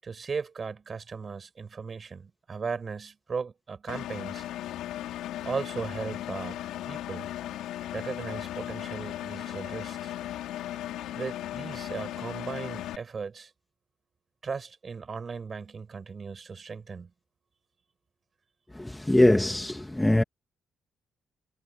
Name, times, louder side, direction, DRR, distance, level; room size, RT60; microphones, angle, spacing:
voice 1, 0.0-4.5 5.5-6.6 6.9-7.3 7.9-10.1 11.2-13.5 14.4-17.1, right 5 dB, 40° right, 7.3 m, -37 dB
Engine, 3.9-13.0, left 13 dB, 90° left, 2.9 m, -36 dB
voice 2, 18.7-20.2, left 1 dB, 10° left, 2.0 m, -22 dB
cardioid pair, 90°, 0 cm